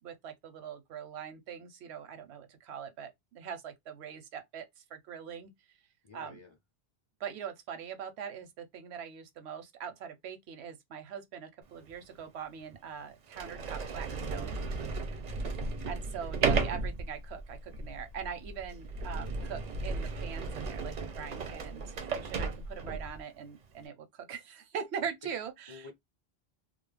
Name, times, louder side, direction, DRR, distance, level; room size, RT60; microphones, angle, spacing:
voice 1, 0.0-5.5 6.1-6.4 7.2-14.6 15.9-25.9, right 7 dB, 90° right, 0.9 m, -42 dB
voice 2, 6.0-6.5 19.4-19.5 25.2-25.4 25.7-25.9, left 3 dB, 35° left, 0.5 m, -50 dB
Sliding door, 11.9-12.0 12.7-12.8 13.3-23.2, right 4 dB, 55° right, 0.5 m, -35 dB
2.3 x 2.0 x 3.2 m
omnidirectional pair, 1.1 m